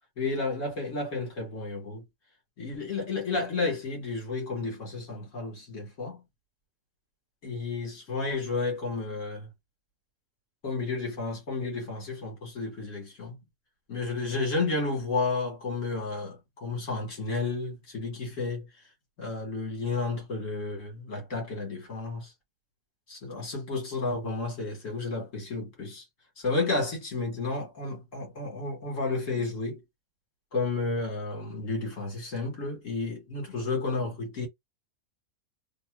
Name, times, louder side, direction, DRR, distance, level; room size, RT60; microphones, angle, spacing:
voice 1, 0.2-2.0 2.6-6.2 7.4-9.5 10.6-13.4 13.9-18.7 19.2-22.3 23.1-26.0 26.4-29.8 30.5-34.5, left 3 dB, 70° left, 2.0 m, -32 dB
3.6 x 2.0 x 3.6 m
omnidirectional pair, 1.4 m